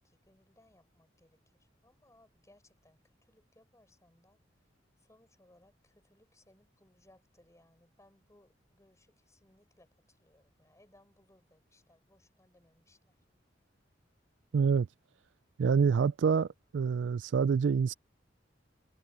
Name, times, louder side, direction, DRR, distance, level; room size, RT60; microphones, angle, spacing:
voice 1, 0.0-4.4 5.0-13.2, left 1 dB, 15° left, 5.4 m, -66 dB
voice 2, 14.5-14.9 15.6-17.9, right 6 dB, 75° right, 0.4 m, -27 dB
head